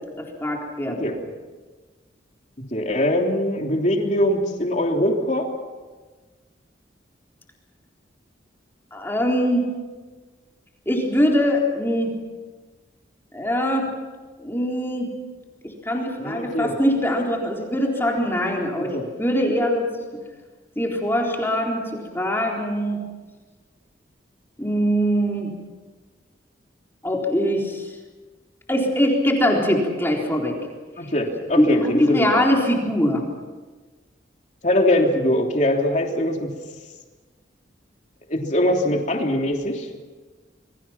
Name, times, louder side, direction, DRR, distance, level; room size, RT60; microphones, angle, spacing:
voice 1, 0.2-1.1 8.9-9.6 10.9-12.1 13.3-13.9 14.4-15.1 15.9-18.9 19.2-19.9 20.8-21.8 22.1-23.0 24.6-25.5 27.0-27.9 28.7-30.6 31.5-33.2, equal, 10° left, -1 dB, 4.0 m, -22 dB
voice 2, 2.7-5.5 16.2-16.7 18.9-19.1 31.0-32.4 34.6-36.5 38.3-39.9, left 1 dB, 40° left, 2 dB, 3.2 m, -22 dB
27.5 x 23.5 x 6.0 m, 1.3 s
head